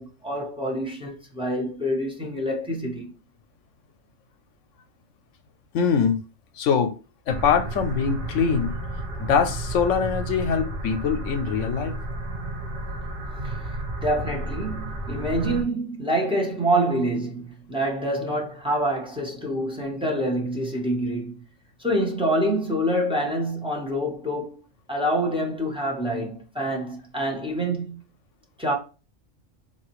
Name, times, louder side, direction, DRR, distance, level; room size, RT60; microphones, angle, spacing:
voice 1, 0.0-3.1 13.4-21.4 21.8-24.5 24.9-28.0 28.6-28.7, right 1 dB, 5° right, 0.7 m, -26 dB
voice 2, 5.7-6.2 6.6-6.9 7.3-8.7 9.2-12.0, left 6 dB, 75° left, 0.9 m, -23 dB
sound 1, 7.3-15.6, right 2 dB, 50° right, 0.9 m, -32 dB
4.0 x 2.8 x 2.9 m
omnidirectional pair, 1.3 m